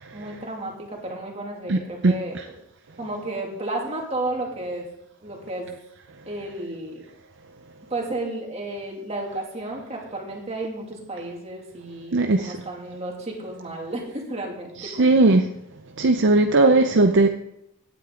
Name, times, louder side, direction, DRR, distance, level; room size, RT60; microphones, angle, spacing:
voice 1, 0.1-0.7 1.0-2.4 3.0-4.9 5.2-5.7 6.3-7.0 7.9-15.4 16.6-16.8, right 2 dB, 30° right, 0 dB, 2.5 m, -32 dB
voice 2, 12.1-12.5 14.8-15.4 16.0-17.3, right 2 dB, 55° right, 5 dB, 0.6 m, -17 dB
16.5 x 9.1 x 3.8 m, 0.82 s
head